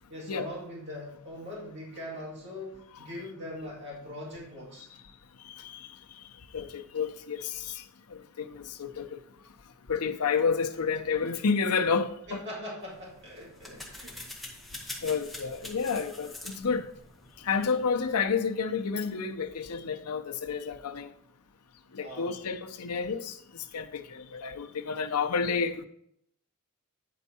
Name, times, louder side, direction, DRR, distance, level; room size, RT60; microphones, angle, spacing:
voice 1, 0.1-4.9 12.3-14.2 22.0-22.4, left 1 dB, 55° right, 2.4 m, -41 dB
voice 2, 5.4-6.2 6.5-9.2 9.9-12.4 15.0-16.9 17.4-21.1 21.9-25.9, left 5 dB, 85° left, 0.7 m, -30 dB
sound 1, 12.8-18.2, left 1 dB, ahead, 1.4 m, -45 dB
9.4 x 4.5 x 4.3 m
head